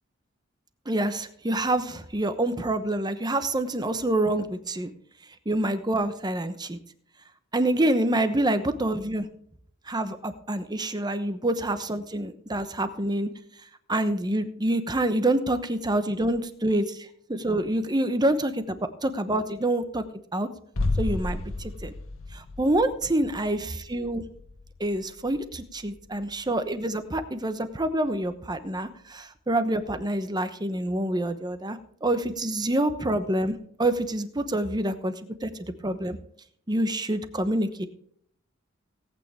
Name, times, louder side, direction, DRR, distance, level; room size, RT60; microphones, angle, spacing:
voice 1, 0.9-4.9 5.5-6.8 7.5-9.3 9.9-13.3 13.9-20.0 20.3-20.5 21.0-21.9 22.3-24.2 24.8-35.1 35.4-35.5 35.8-36.2 36.7-37.9, right 1 dB, 20° right, 10 dB, 1.0 m, -27 dB
sound 1, 20.8-26.5 26.8-26.9, left 2 dB, 85° left, 1.3 m, -33 dB
18.0 x 9.0 x 3.5 m, 0.64 s
head